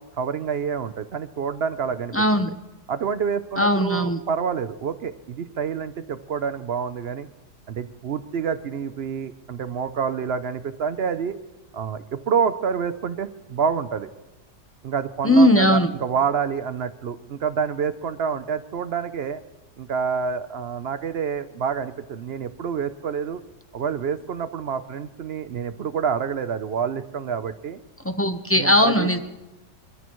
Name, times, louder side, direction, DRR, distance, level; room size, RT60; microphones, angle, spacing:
voice 1, 0.0-2.4 2.9-7.3 7.7-11.4 11.7-14.1 14.8-19.4 19.8-23.4 23.7-27.8 28.6-29.2, right 6 dB, 60° right, 11 dB, 0.6 m, -27 dB
voice 2, 2.1-2.5 3.6-4.2 15.2-15.9 28.0-29.2, left 1 dB, 20° left, 7 dB, 0.4 m, -18 dB
24.5 x 13.5 x 3.1 m, 1.1 s
omnidirectional pair, 1.7 m